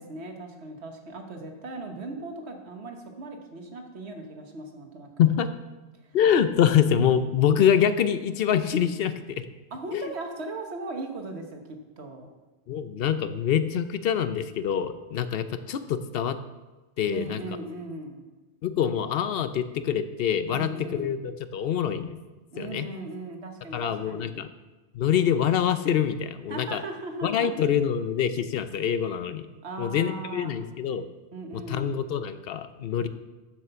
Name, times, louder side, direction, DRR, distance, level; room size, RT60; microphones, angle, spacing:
voice 1, 0.0-5.2 9.7-12.3 17.1-18.3 20.5-21.1 22.5-24.4 26.5-27.5 29.6-30.6 31.3-31.9, right 2 dB, 80° right, 4 dB, 1.4 m, -38 dB
voice 2, 5.2-5.5 6.1-9.4 9.9-10.1 12.7-16.4 17.0-17.4 18.6-22.2 22.6-22.9 23.7-24.5 24.9-26.8 27.2-29.5 29.8-31.0 31.5-33.1, left 8 dB, 65° left, 12 dB, 0.8 m, -25 dB
7.7 x 6.2 x 6.7 m, 1.2 s
omnidirectional pair, 1.1 m